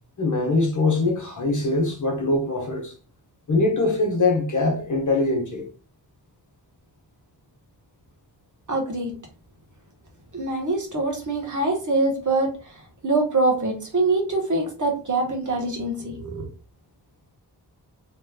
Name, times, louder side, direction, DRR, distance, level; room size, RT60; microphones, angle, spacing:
voice 1, 0.2-2.9 3.5-5.6, left 2 dB, 45° left, 1.1 m, -22 dB
voice 2, 8.7-9.1 10.3-12.5 13.0-16.4, right 2 dB, 45° right, 1.4 m, -24 dB
3.2 x 3.2 x 2.3 m
cardioid pair, 55°, 42 cm